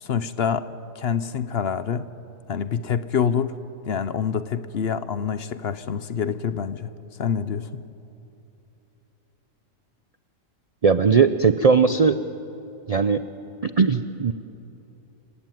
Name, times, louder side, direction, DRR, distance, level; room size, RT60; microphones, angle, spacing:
voice 1, 0.0-0.7 1.0-2.1 2.5-3.5 3.9-6.9 7.2-7.8, left 7 dB, 55° left, 13 dB, 0.9 m, -26 dB
voice 2, 10.8-12.2 12.9-13.2 13.6-14.3, right 5 dB, 50° right, 10 dB, 0.4 m, -18 dB
29.0 x 17.5 x 9.1 m, 2.8 s
omnidirectional pair, 1.4 m